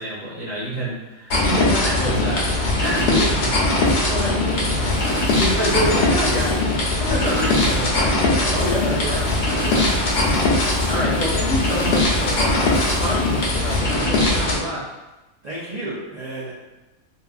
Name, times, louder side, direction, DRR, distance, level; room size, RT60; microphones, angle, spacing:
voice 1, 0.0-8.6 8.8-9.2 10.2-10.4 10.9-14.9, equal, 10° left, -11 dB, 0.8 m, -28 dB
sound 1, 1.3-14.6, left 2 dB, 60° left, 0.7 m, -20 dB
sound 2, 2.1-2.5 3.0-3.3 3.8-4.3 5.4-6.5 7.1-8.1, equal, 55° right, 0.7 m, -36 dB
sound 3, 4.4-13.8, left 2 dB, 80° left, 1.1 m, -41 dB
voice 2, 5.6-6.4 8.5-9.9 15.4-16.5, right 1 dB, 85° right, -7 dB, 0.3 m, -30 dB
2.7 x 2.3 x 2.4 m, 1.1 s
omnidirectional pair, 1.4 m